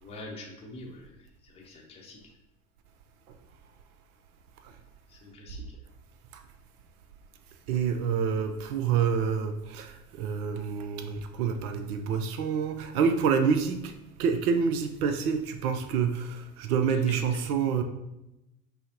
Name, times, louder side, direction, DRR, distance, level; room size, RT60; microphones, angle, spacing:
voice 1, 0.0-1.1 1.4-2.2 5.1-5.6, left 2 dB, 15° left, 0.7 m, -45 dB
voice 2, 7.7-13.9 14.2-17.8, right 6 dB, 75° right, 0.5 m, -27 dB
5.5 x 2.0 x 2.7 m
hypercardioid pair, 75°, 45 cm